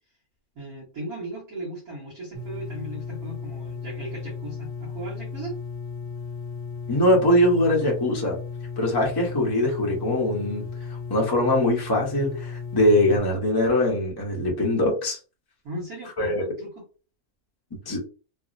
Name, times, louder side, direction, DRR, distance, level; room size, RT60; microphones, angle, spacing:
voice 1, 0.5-5.6 15.6-16.8, right 2 dB, 80° right, -8 dB, 1.7 m, -37 dB
sound 1, 2.3-13.2, left 5 dB, 45° left, 1.0 m, -35 dB
voice 2, 6.9-8.4 8.8-10.6 11.1-15.2 16.2-16.4 17.9-18.0, left 1 dB, 20° left, -2 dB, 0.7 m, -22 dB
3.5 x 2.0 x 2.5 m, 0.35 s
omnidirectional pair, 1.5 m